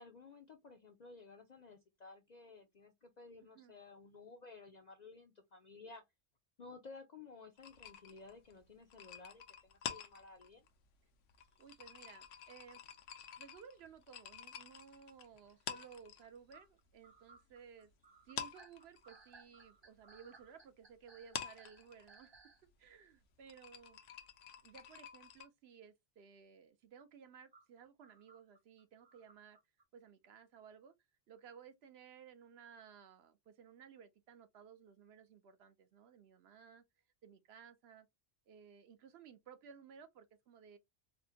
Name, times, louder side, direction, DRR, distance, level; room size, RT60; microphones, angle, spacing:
voice 1, 0.0-6.0 6.6-10.6, left 4 dB, 55° left, 0.5 m, -55 dB
sound 1, 7.6-16.6 16.9-17.9 18.2-25.5, left 8 dB, 85° left, 1.0 m, -49 dB
sound 2, 11.4-13.0 13.4-14.9 15.3-15.5 15.8-15.9 16.5-22.6 23.4-23.5 25.4-25.5 27.5-29.8, right 4 dB, 35° right, 0.5 m, -63 dB
voice 2, 11.6-12.8 13.4-17.9 18.2-22.3 22.8-24.0 24.6-29.6 29.9-30.9 31.3-36.8 37.2-38.1 38.5-40.8, right 7 dB, 65° right, 0.8 m, -58 dB
4.3 x 2.1 x 2.7 m
omnidirectional pair, 1.2 m